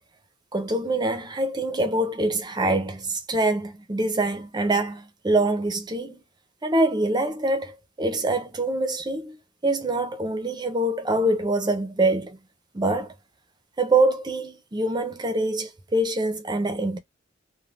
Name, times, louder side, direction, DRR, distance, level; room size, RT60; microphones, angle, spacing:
voice 1, 0.5-6.2 6.6-9.4 9.6-12.4 12.7-13.1 13.8-17.0, right 2 dB, 20° right, 0.6 m, -25 dB
2.5 x 2.2 x 3.3 m
head